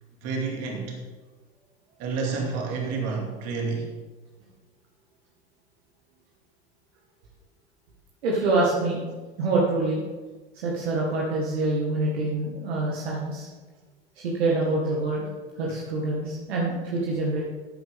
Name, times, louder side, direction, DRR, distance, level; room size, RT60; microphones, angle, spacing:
voice 1, 0.2-1.0 2.0-3.9, right 4 dB, 50° right, 1 dB, 2.7 m, -29 dB
voice 2, 8.2-9.0 9.4-10.0 10.5-13.5 14.2-15.3 15.6-17.4, right 2 dB, 70° right, -3 dB, 2.0 m, -26 dB
13.0 x 9.2 x 3.7 m, 1.3 s
figure-of-eight pair, 75°, 32 cm